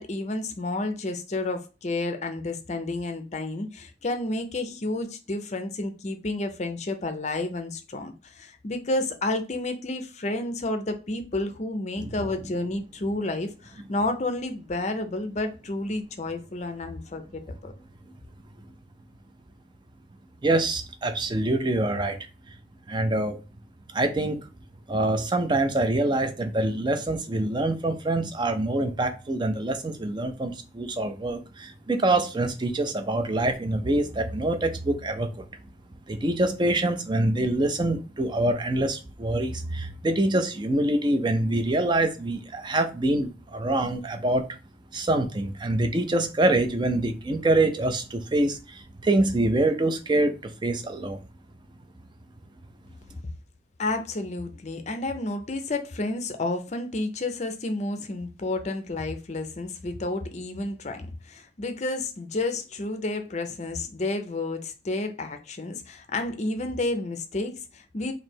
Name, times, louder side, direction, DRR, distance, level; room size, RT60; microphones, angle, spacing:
voice 1, 0.0-17.7 53.8-68.1, left 2 dB, 35° left, 0.5 m, -31 dB
voice 2, 20.4-22.2 22.9-23.4 23.9-24.5 24.9-35.4 36.1-44.4 44.9-51.2, right 2 dB, 25° right, 0.4 m, -25 dB
3.1 x 2.6 x 4.4 m
head